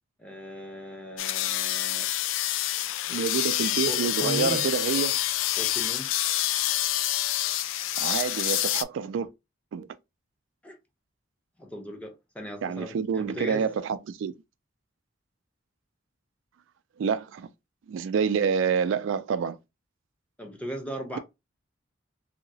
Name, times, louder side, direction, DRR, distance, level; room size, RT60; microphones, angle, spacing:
voice 1, 0.2-2.1 3.1-3.3 3.9-4.6 5.6-6.1 10.6-10.8 11.6-13.7 20.4-21.2, equal, 5° left, 0.8 m, -37 dB
sound 1, 1.2-8.8, left 13 dB, 90° left, 0.3 m, -27 dB
voice 2, 3.1-5.2 8.0-9.3 9.7-9.9 12.6-14.3 17.0-17.5 17.9-19.6, right 6 dB, 85° right, 0.3 m, -27 dB
2.8 x 2.8 x 2.7 m
head